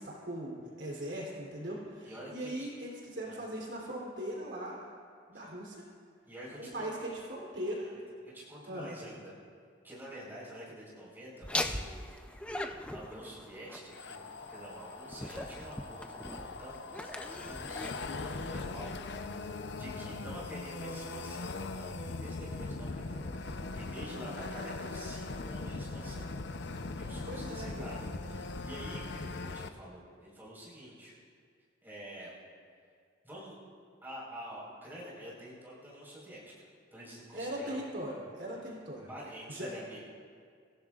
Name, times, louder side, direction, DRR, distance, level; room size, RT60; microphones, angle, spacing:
voice 1, 0.0-4.8 5.3-5.9 6.6-7.9 8.6-8.9 24.1-24.5 27.3-27.9 37.3-39.1 39.5-39.7, right 1 dB, 65° right, -4 dB, 3.2 m, -39 dB
voice 2, 2.0-2.8 3.3-3.4 5.3-5.5 6.2-6.9 7.9-9.3 9.8-12.2 12.5-18.9 19.2-21.9 22.2-26.3 26.9-31.1 31.8-32.3 33.2-33.6 34.0-37.8 39.1-40.0, equal, 10° right, -7 dB, 4.4 m, -48 dB
Laughter, 11.4-19.1, left 1 dB, 5° left, 0.5 m, -41 dB
sound 1, 13.9-29.7, left 3 dB, 60° left, 0.6 m, -40 dB
26.5 x 15.5 x 2.4 m, 2.1 s
head